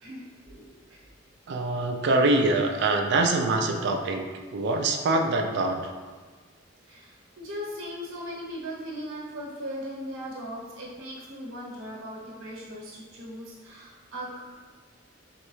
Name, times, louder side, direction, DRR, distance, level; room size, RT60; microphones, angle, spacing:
voice 1, 0.0-1.1 6.9-14.4, equal, 90° right, -4 dB, 1.0 m, -38 dB
voice 2, 1.5-4.2 4.5-5.8, right 2 dB, 60° right, 3 dB, 0.4 m, -24 dB
3.5 x 3.1 x 3.1 m, 1.5 s
head